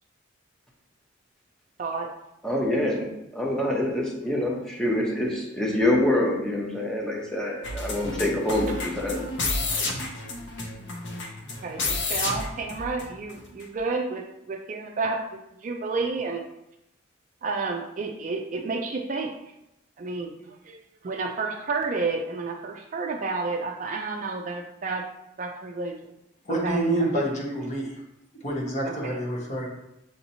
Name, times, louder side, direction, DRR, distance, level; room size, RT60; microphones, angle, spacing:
voice 1, 2.4-9.2, left 1 dB, 5° left, -2 dB, 0.7 m, -26 dB
sound 1, 7.6-13.3 13.6-13.7, left 3 dB, 65° left, 0.6 m, -31 dB
voice 2, 11.6-16.4 17.4-19.3 20.0-20.8 21.0-25.1 25.4-26.0 26.5-27.2 28.8-29.2, right 3 dB, 40° right, 2 dB, 0.4 m, -31 dB
voice 3, 26.5-27.9 28.4-29.7, right 1 dB, 35° left, -2 dB, 0.9 m, -27 dB
6.5 x 2.8 x 2.7 m, 0.84 s
head